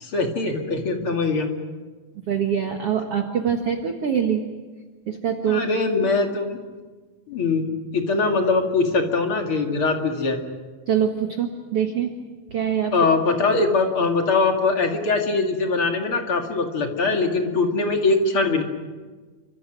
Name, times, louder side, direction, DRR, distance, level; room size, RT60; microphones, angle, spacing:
voice 1, 0.0-1.5 5.5-6.6 7.3-10.4 12.9-18.6, left 3 dB, 40° left, 3 dB, 2.5 m, -22 dB
voice 2, 2.3-4.4 5.1-5.6 10.9-12.1 12.5-12.9, right 8 dB, 55° right, 4 dB, 1.7 m, -24 dB
29.5 x 25.5 x 6.2 m, 1.4 s
omnidirectional pair, 4.6 m